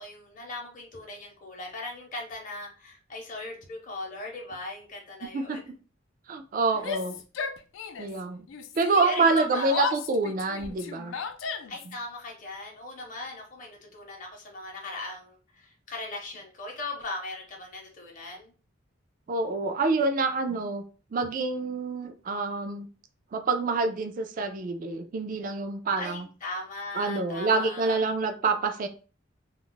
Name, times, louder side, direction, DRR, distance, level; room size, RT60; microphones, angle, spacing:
voice 1, 0.0-5.7 9.0-9.8 11.7-18.5 26.0-28.1, left 2 dB, 40° left, 0 dB, 0.7 m, -38 dB
voice 2, 6.3-7.2 8.0-8.5 8.8-11.1 19.3-20.8 21.1-22.9 23.3-26.3 26.9-28.9, right 3 dB, 45° right, 7 dB, 0.3 m, -27 dB
Yell, 6.7-8.2 8.5-11.9, left 5 dB, 75° left, 0.4 m, -34 dB
2.3 x 2.0 x 3.8 m, 0.37 s
head